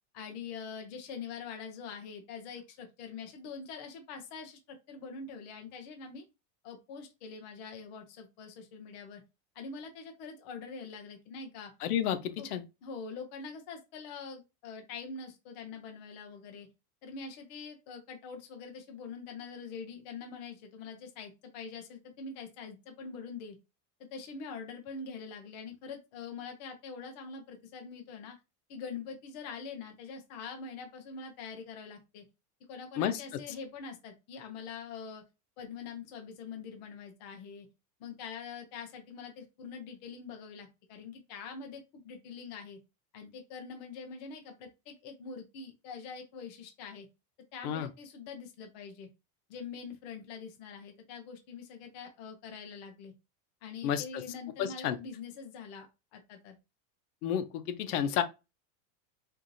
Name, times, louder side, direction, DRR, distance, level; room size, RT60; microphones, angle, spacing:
voice 1, 0.1-6.2 6.6-9.2 9.6-11.7 12.4-12.5 12.8-16.7 17.0-23.6 24.1-28.3 28.7-32.2 32.7-35.2 35.6-37.7 38.0-42.8 43.1-47.1 47.5-49.1 49.5-53.1 53.6-56.6, left 5 dB, 30° left, 0.4 m, -44 dB
voice 2, 11.8-12.6 33.0-33.2 47.6-47.9 53.8-54.2 54.6-55.0 57.2-58.2, left 9 dB, 75° left, 0.7 m, -31 dB
4.6 x 2.5 x 2.5 m
supercardioid pair, 180°, 46 cm